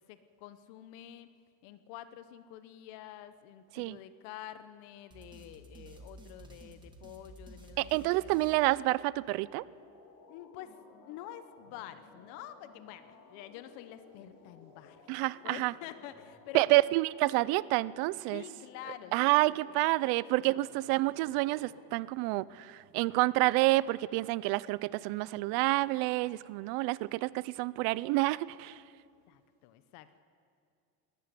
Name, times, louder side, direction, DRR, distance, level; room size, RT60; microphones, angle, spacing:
voice 1, 0.1-1.3 1.6-8.6 10.3-10.8 11.1-15.1 15.4-16.8 17.2-17.3 18.3-19.6 20.4-20.5 29.3-30.2, left 12 dB, 85° left, 12 dB, 1.1 m, -48 dB
sound 1, 5.1-9.4, right 2 dB, 10° right, 1.6 m, -53 dB
voice 2, 7.8-9.6 15.1-15.7 16.5-18.4 19.1-28.8, right 20 dB, 75° right, 20 dB, 0.6 m, -28 dB
sound 2, 9.5-21.9, left 4 dB, 50° left, 3.5 m, -57 dB
20.0 x 14.0 x 9.8 m, 2.3 s
cardioid pair, 170°, 38 cm